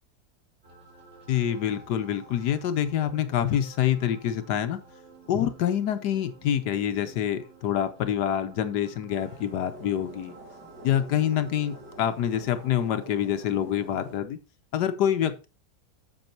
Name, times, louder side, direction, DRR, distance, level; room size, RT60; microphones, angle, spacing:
sound 1, 0.6-13.0, right 3 dB, 40° right, 3.2 m, -52 dB
voice 1, 1.3-4.8 5.3-10.3 10.8-14.4 14.7-15.5, left 10 dB, 75° left, 10 dB, 1.3 m, -26 dB
sound 2, 9.1-14.2, right 2 dB, 75° right, 2.6 m, -47 dB
7.9 x 6.2 x 4.4 m, 0.33 s
omnidirectional pair, 1.8 m